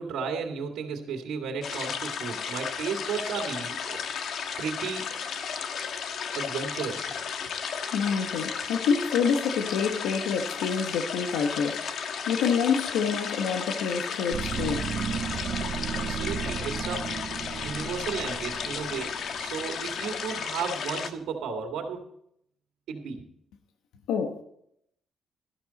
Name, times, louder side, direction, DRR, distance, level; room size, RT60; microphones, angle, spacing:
voice 1, 0.0-4.0 4.6-5.0 6.3-7.1 15.9-17.1 17.6-22.0 22.9-23.3, right 6 dB, 80° right, 2.0 m, -34 dB
sound 1, 1.6-21.1, left 6 dB, 65° left, 1.3 m, -34 dB
voice 2, 7.9-11.8 12.3-14.9 24.1-24.4, left 6 dB, 90° left, 1.3 m, -27 dB
sound 2, 14.3-20.3, right 7 dB, 50° right, 0.8 m, -34 dB
13.0 x 12.5 x 4.1 m
cardioid pair, 95°, 0 cm